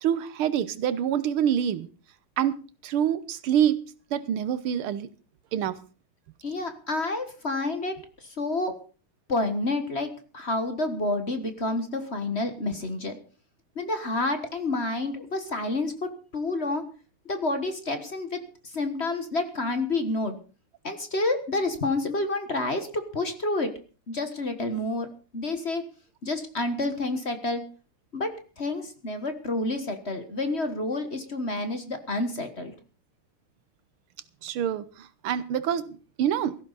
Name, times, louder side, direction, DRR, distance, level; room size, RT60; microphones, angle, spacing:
voice 1, 0.0-1.9 2.4-2.6 2.8-3.8 4.1-5.1 5.5-5.8 34.4-36.6, right 9 dB, 85° right, 15 dB, 1.8 m, -26 dB
voice 2, 6.4-8.7 9.3-13.2 13.7-16.8 17.2-20.4 20.8-23.7 24.1-25.1 25.3-25.8 26.2-27.6 28.1-32.7, left 2 dB, 35° left, 8 dB, 1.5 m, -29 dB
17.0 x 14.5 x 4.1 m, 0.37 s
omnidirectional pair, 2.3 m